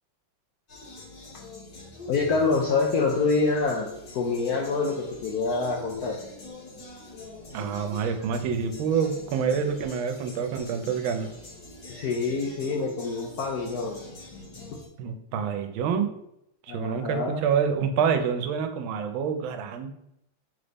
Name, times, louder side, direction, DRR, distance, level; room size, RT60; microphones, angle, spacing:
sound 1, 0.7-14.9, left 2 dB, 60° left, 1.8 m, -44 dB
voice 1, 2.1-6.2 11.9-14.0 14.7-14.8 16.7-17.4, left 4 dB, 75° left, 0 dB, 0.8 m, -26 dB
voice 2, 7.5-11.3 15.0-16.1 16.7-19.9, right 7 dB, 90° right, 7 dB, 1.4 m, -27 dB
3.7 x 3.4 x 3.9 m, 0.79 s
omnidirectional pair, 2.1 m